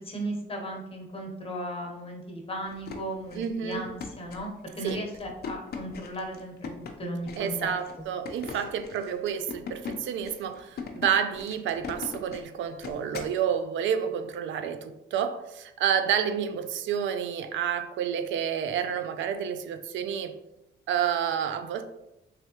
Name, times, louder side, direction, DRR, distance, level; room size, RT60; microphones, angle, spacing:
voice 1, 0.0-7.7 8.5-8.6, equal, 30° left, 1 dB, 1.0 m, -36 dB
sound 1, 2.6-13.4, left 5 dB, 55° left, 0.6 m, -40 dB
voice 2, 3.3-3.8 4.8-5.0 7.4-20.4 20.9-21.8, right 8 dB, 75° right, 9 dB, 0.4 m, -29 dB
3.4 x 3.3 x 2.9 m, 0.90 s
cardioid pair, 90°, 20 cm